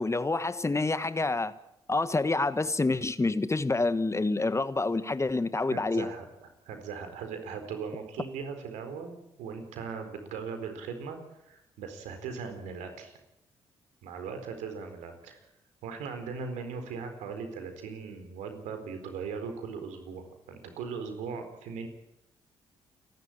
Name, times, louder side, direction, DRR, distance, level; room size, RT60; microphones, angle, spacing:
voice 1, 0.0-1.5 1.9-6.1, left 3 dB, 25° left, 13 dB, 1.4 m, -27 dB
voice 2, 5.7-6.3 6.7-11.2 11.4-13.2 14.0-15.4 15.8-21.9, right 5 dB, 75° right, 7 dB, 4.3 m, -39 dB
28.5 x 12.0 x 8.9 m, 0.87 s
hypercardioid pair, 45°, 12 cm